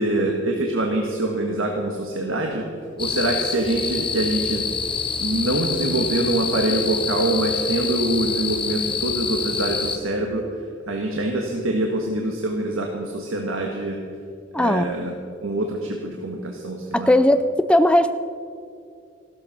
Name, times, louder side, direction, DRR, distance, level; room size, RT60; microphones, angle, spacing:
voice 1, 0.0-2.6 3.0-4.6 5.2-10.4 10.9-14.0 14.5-15.1 15.4-17.1, right 1 dB, 85° right, 1 dB, 1.5 m, -24 dB
sound 1, 3.0-10.0, left 6 dB, 25° left, 1.0 m, -27 dB
voice 2, 14.5-14.9 16.9-18.1, left 1 dB, 5° left, 10 dB, 0.4 m, -18 dB
15.5 x 12.5 x 5.9 m, 2.3 s
head